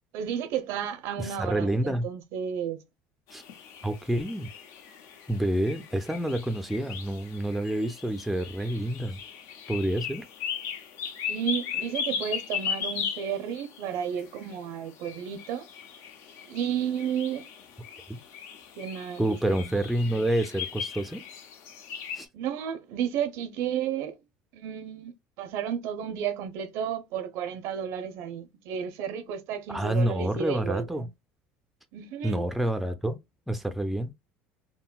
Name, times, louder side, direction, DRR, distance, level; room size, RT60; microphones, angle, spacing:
voice 1, 0.1-2.8 11.3-15.7 16.5-17.5 18.8-19.7 22.3-24.2 24.5-31.1 31.9-32.4, right 8 dB, 70° right, 0.5 m, -32 dB
voice 2, 1.2-2.1 3.3-3.4 3.8-4.5 5.3-9.2 9.7-10.2 18.1-18.2 19.2-21.2 22.1-22.3 29.7-31.1 32.2-33.2 33.5-34.1, right 1 dB, ahead, 0.4 m, -28 dB
sound 1, 3.3-22.2, left 7 dB, 65° left, 0.6 m, -38 dB
3.7 x 2.0 x 2.3 m
supercardioid pair, 110°, 5 cm